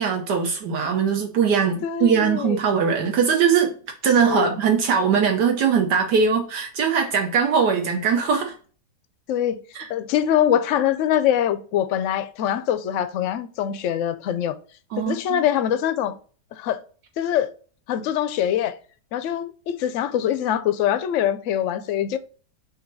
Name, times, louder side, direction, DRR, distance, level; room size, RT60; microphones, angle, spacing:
voice 1, 0.0-3.7 4.0-8.5 9.7-9.9 14.9-15.4, right 6 dB, 75° right, 1.4 m, -21 dB
voice 2, 1.8-2.6 4.2-4.6 9.3-9.6 9.9-14.5 15.0-16.1 16.5-16.8 17.2-17.5 17.9-18.8 19.1-22.2, left 10 dB, 65° left, 0.8 m, -23 dB
6.3 x 2.7 x 5.3 m
omnidirectional pair, 1.8 m